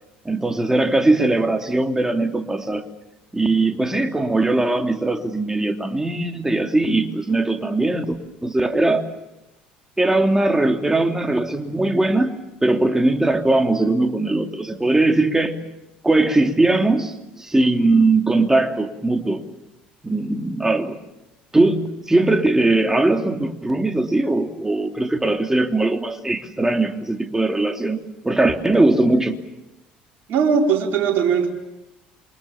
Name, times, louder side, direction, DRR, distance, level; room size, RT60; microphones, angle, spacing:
voice 1, 0.2-2.8 3.3-9.0 10.0-12.3 12.6-15.6 16.0-19.4 20.0-21.0 21.5-28.0 28.2-29.4, right 2 dB, 10° right, 5 dB, 3.0 m, -20 dB
voice 2, 30.3-31.5, right 6 dB, 55° right, 0 dB, 4.4 m, -19 dB
27.5 x 24.0 x 7.2 m, 0.93 s
hypercardioid pair, 65°, 4 cm